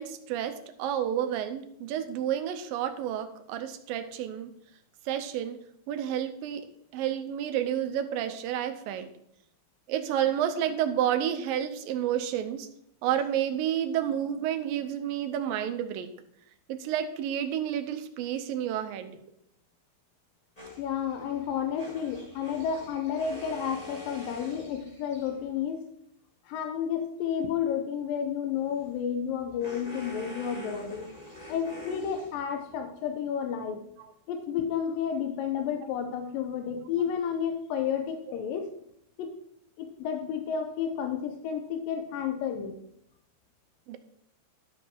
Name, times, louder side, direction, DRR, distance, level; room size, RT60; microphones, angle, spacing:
voice 1, 0.0-4.5 5.1-6.6 6.9-9.1 9.9-12.7 13.0-16.1 16.7-19.2 34.0-34.1 43.9-44.0, right 10 dB, 75° right, 8 dB, 2.3 m, -30 dB
sound 1, 20.6-25.5 28.5-32.8, left 1 dB, 20° left, 1.1 m, -46 dB
voice 2, 20.8-25.8 26.5-31.1 31.5-33.8 34.3-38.7 39.2-39.4 39.8-42.8, left 8 dB, 75° left, 6 dB, 2.3 m, -31 dB
13.0 x 5.8 x 4.6 m, 0.72 s
omnidirectional pair, 4.4 m